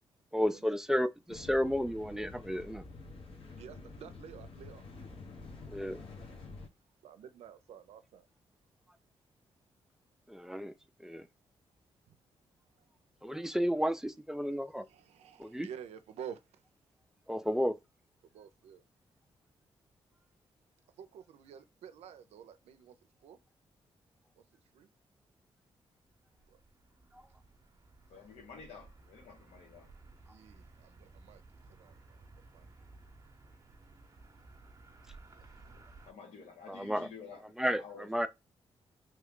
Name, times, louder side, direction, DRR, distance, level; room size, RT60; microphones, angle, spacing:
voice 1, 0.3-2.8 5.7-6.0 10.3-10.7 11.0-11.3 13.2-14.8 15.4-15.7 17.3-17.8 27.1-27.2 36.7-37.1 37.6-38.3, equal, 5° right, 0.4 m, -32 dB
sound 1, 1.3-6.7, left 3 dB, 60° left, 1.1 m, -48 dB
voice 2, 3.4-4.9 7.0-8.2 12.1-12.2 14.9-16.4 18.3-18.8 21.0-23.0 23.2-23.4 24.7-24.9 26.5-26.6 30.3-31.4 31.7-32.0 32.5-32.7 35.4-35.5, right 8 dB, 90° right, 0.4 m, -50 dB
sound 2, 25.8-36.1, right 3 dB, 30° right, 0.7 m, -57 dB
voice 3, 28.1-29.9 35.7-38.3, left 5 dB, 90° left, 1.1 m, -51 dB
3.1 x 2.3 x 3.6 m
cardioid pair, 80°, 10 cm